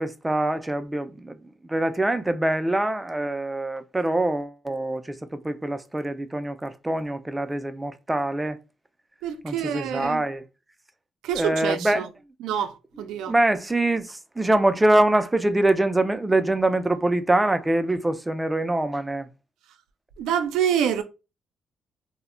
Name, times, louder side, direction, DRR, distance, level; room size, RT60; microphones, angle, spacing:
voice 1, 0.0-1.4 1.7-8.6 9.4-10.4 11.3-12.1 13.3-19.3, right 1 dB, 15° right, 0.3 m, -24 dB
voice 2, 9.2-10.2 11.2-12.1 12.4-13.3 20.2-21.0, right 9 dB, 90° right, 0.4 m, -26 dB
2.1 x 2.1 x 3.6 m
cardioid pair, 90°, 0 cm